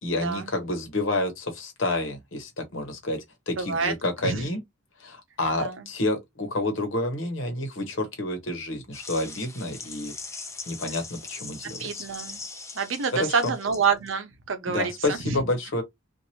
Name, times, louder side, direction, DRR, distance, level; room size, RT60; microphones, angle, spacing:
voice 1, 0.0-4.6 5.0-10.1 10.7-12.0 13.1-13.5 14.7-15.8, left 2 dB, 70° left, 1.1 m, -29 dB
voice 2, 3.6-3.9 4.2-4.4 5.5-5.9 11.6-12.4 12.7-15.4, right 5 dB, 70° right, 0.7 m, -27 dB
sound 1, 8.9-14.1, left 4 dB, 15° left, 0.6 m, -40 dB
3.0 x 2.5 x 2.7 m
head